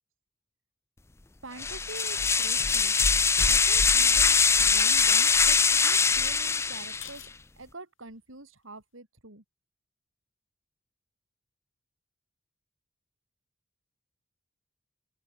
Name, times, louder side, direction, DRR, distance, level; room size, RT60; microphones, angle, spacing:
voice 1, 1.4-2.9 3.5-7.2 7.6-9.4, right 2 dB, 85° right, 4.4 m, -45 dB
sound 1, 1.6-7.2, left 5 dB, 15° left, 0.4 m, -22 dB
sound 2, 5.5-6.1 7.0-7.4 8.0-8.5, left 13 dB, 80° left, 3.7 m, -47 dB
open air
head